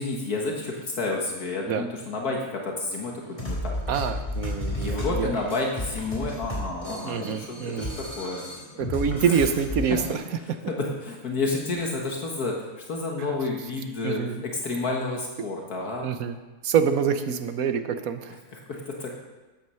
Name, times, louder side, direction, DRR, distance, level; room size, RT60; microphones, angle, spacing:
voice 1, 0.0-3.7 4.7-8.4 9.2-9.4 10.4-16.1 18.5-19.1, left 3 dB, 65° left, 0 dB, 2.0 m, -30 dB
sound 1, 3.2-10.1, left 1 dB, 20° left, 2.9 m, -33 dB
voice 2, 3.9-5.3 7.0-7.9 8.8-10.2 10.5-10.6 13.2-13.3 14.0-14.4 16.0-16.4 16.6-18.4, right 7 dB, 65° right, 9 dB, 1.3 m, -26 dB
13.0 x 9.5 x 5.7 m, 1.2 s
omnidirectional pair, 1.7 m